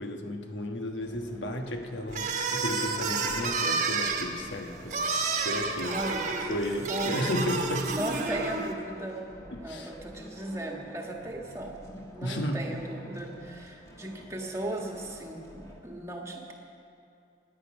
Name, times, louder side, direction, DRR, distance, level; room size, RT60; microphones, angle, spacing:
voice 1, 0.0-5.0 5.4-6.0 6.5-7.9 9.5-9.9 11.9-12.8, left 1 dB, 75° left, 4 dB, 1.3 m, -33 dB
sound 1, 1.0-15.8, equal, 20° left, 1.7 m, -49 dB
sound 2, 2.1-8.7, right 4 dB, 40° right, 1.2 m, -30 dB
voice 2, 5.9-6.2 6.9-7.3 7.9-9.3 9.6-11.7 12.1-16.5, right 1 dB, 15° right, 1 dB, 1.5 m, -36 dB
17.5 x 10.0 x 6.1 m, 2.6 s
head